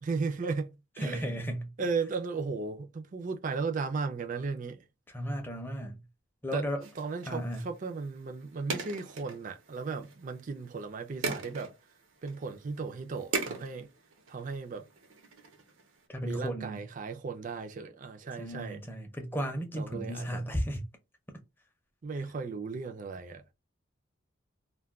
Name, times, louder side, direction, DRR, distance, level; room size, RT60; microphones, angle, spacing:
voice 1, 0.0-1.4 1.8-4.8 6.5-6.7 7.0-11.7 12.2-13.9 14.3-14.9 16.2-18.8 19.7-20.4 22.0-23.4, right 4 dB, 40° right, 0.4 m, -36 dB
voice 2, 1.0-1.7 5.1-6.0 6.4-6.9 7.3-7.7 16.1-16.8 18.4-20.8, equal, 10° left, 0.5 m, -34 dB
sound 1, 6.8-16.1, right 4 dB, 85° right, 0.7 m, -41 dB
2.3 x 2.2 x 3.5 m
head